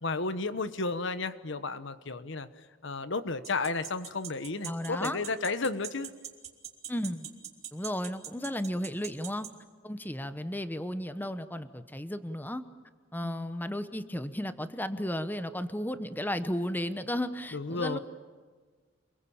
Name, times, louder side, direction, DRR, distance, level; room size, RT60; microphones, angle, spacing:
voice 1, 0.0-6.1 13.2-13.5 17.5-18.0, left 3 dB, 65° left, 12 dB, 1.2 m, -33 dB
sound 1, 3.4-9.5, right 9 dB, 35° right, 2.9 m, -40 dB
voice 2, 4.6-5.2 6.9-7.3 7.7-9.5 9.8-12.6 13.1-18.0, left 1 dB, 10° left, 11 dB, 1.0 m, -34 dB
28.0 x 22.5 x 8.7 m, 1.5 s
head